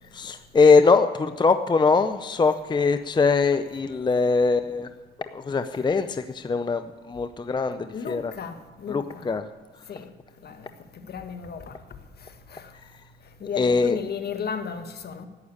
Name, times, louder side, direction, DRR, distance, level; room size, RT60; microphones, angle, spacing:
voice 1, 0.2-4.9 5.3-8.3 8.9-9.4 13.6-14.0, left 4 dB, 20° left, 0.5 m, -22 dB
voice 2, 7.9-9.3 9.9-10.1 10.4-10.7 10.9-11.8 12.2-12.7 13.4-15.3, left 6 dB, 55° left, 1.4 m, -34 dB
11.5 x 8.5 x 9.9 m
cardioid pair, 90°, 20 cm